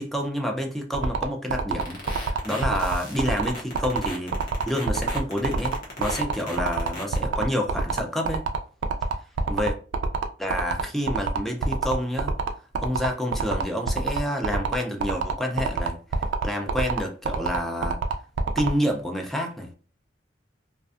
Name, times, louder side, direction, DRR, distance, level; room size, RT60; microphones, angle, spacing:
voice 1, 0.0-4.3 4.7-8.4 9.5-9.8 10.4-12.3 12.8-18.0 18.6-19.8, equal, ahead, 0.4 m, -28 dB
sound 1, 0.9-18.7, right 5 dB, 75° right, 0.3 m, -26 dB
sound 2, 1.8-7.2, left 2 dB, 50° left, 0.8 m, -37 dB
2.5 x 2.2 x 2.4 m
head